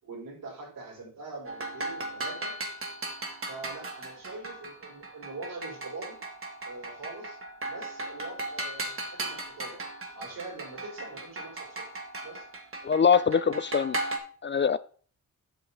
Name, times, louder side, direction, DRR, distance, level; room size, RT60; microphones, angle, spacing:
voice 1, 0.0-2.6 3.4-6.2 6.6-7.4 7.6-9.9 10.1-11.9 12.2-12.5, right 3 dB, 70° right, 0 dB, 4.9 m, -43 dB
sound 1, 1.5-14.2, right 2 dB, 40° right, 1.8 m, -37 dB
voice 2, 12.8-14.0 14.4-14.8, left 6 dB, 35° left, 14 dB, 0.4 m, -23 dB
8.1 x 6.8 x 4.2 m, 0.42 s
cardioid pair, 95°, 34 cm